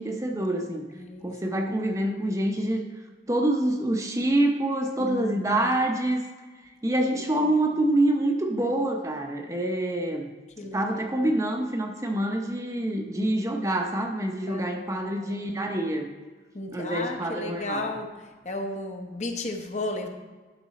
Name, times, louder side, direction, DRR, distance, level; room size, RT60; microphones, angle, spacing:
voice 1, 0.0-0.8 1.2-2.8 3.3-6.2 6.8-10.3 10.6-16.1 16.7-17.9, right 1 dB, 20° right, 3 dB, 0.7 m, -26 dB
voice 2, 1.0-1.3 5.0-5.7 10.6-10.8 11.1-11.3 14.5-14.7 15.2-15.3 16.5-18.1 18.4-20.1, left 2 dB, 40° left, 4 dB, 0.8 m, -34 dB
11.0 x 6.0 x 4.1 m, 1.3 s
head